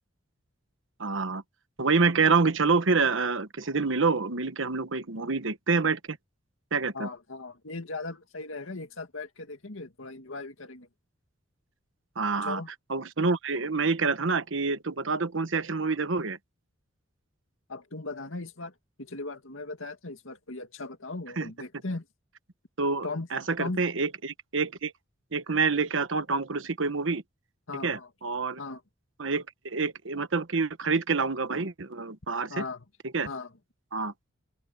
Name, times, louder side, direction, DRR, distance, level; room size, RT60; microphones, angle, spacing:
voice 1, 1.0-1.4 1.8-6.2 6.7-7.1 12.2-12.6 12.9-16.4 21.4-21.5 22.8-24.9 25.3-27.2 27.8-28.6 29.2-32.6 33.1-33.3 33.9-34.1, right 4 dB, 75° right, 1.2 m, -27 dB
voice 2, 6.9-10.9 12.4-12.7 17.7-22.1 23.0-23.3 23.6-23.8 27.7-28.1 28.6-28.8 32.5-32.8 33.3-33.5, left 3 dB, 85° left, 2.2 m, -38 dB
open air
head